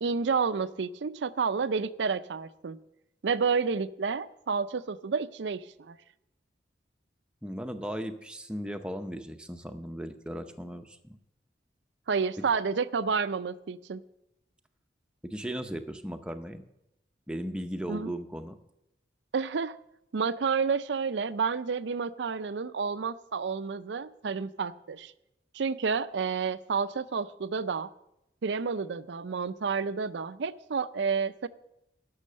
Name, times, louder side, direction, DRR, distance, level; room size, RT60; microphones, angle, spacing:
voice 1, 0.0-2.8 3.2-6.0 12.1-14.0 17.9-18.1 19.3-19.8 20.1-25.1 25.5-27.9 28.4-31.5, right 5 dB, 85° right, 15 dB, 0.5 m, -30 dB
voice 2, 7.4-11.2 15.2-16.6 17.3-18.6, equal, 5° right, 6 dB, 0.6 m, -37 dB
11.5 x 6.4 x 7.5 m, 0.86 s
head